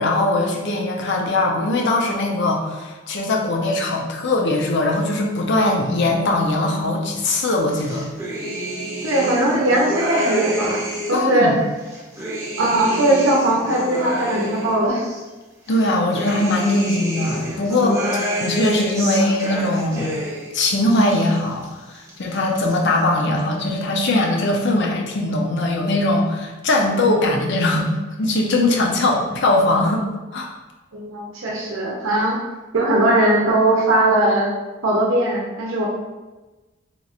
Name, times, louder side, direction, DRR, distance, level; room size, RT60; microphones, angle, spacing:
voice 1, 0.0-8.1 11.1-11.5 15.7-20.1 20.5-27.9 28.2-30.1 30.3-30.5, left 2 dB, 60° left, 1 dB, 0.5 m, -20 dB
sound 1, 7.7-11.3 11.8-15.2 15.7-20.5 20.8-21.7 22.0-22.7, equal, 15° right, 0.6 m, -28 dB
voice 2, 9.0-11.5 12.6-15.0 30.9-32.4 32.7-34.5 34.8-35.9, right 1 dB, 75° right, -3 dB, 0.6 m, -19 dB
2.9 x 2.4 x 4.1 m, 1.2 s
head